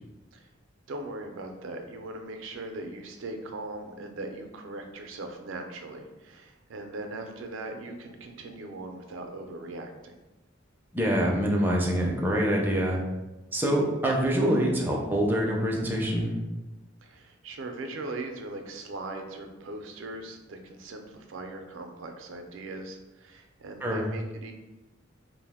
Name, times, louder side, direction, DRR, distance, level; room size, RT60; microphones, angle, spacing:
voice 1, 0.9-10.2 17.0-24.5, right 2 dB, 75° right, 4 dB, 0.4 m, -39 dB
voice 2, 10.9-13.0 13.5-16.3 23.8-24.0, equal, 10° right, -2 dB, 0.4 m, -25 dB
2.5 x 2.0 x 3.4 m, 1.1 s
head